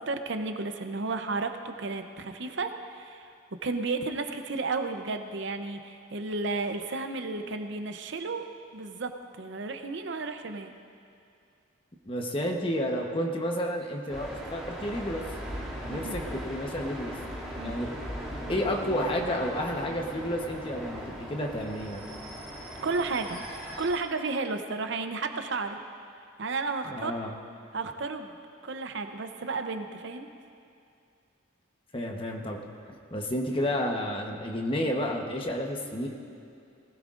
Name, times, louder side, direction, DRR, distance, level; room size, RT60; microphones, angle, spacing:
voice 1, 0.0-3.3 3.6-8.5 8.7-10.7 15.9-16.2 17.6-17.7 22.8-23.4 23.8-25.8 26.4-27.1 27.7-28.4 28.6-30.3, right 3 dB, 60° right, 7 dB, 0.7 m, -33 dB
voice 2, 12.1-15.3 15.8-17.1 17.6-18.0 18.5-22.0 26.9-27.3 31.9-32.6 33.1-36.1, equal, 25° left, 1 dB, 1.0 m, -31 dB
sound 1, 14.1-23.9, equal, ahead, 2.5 m, -39 dB
19.5 x 15.5 x 2.5 m, 2.5 s
head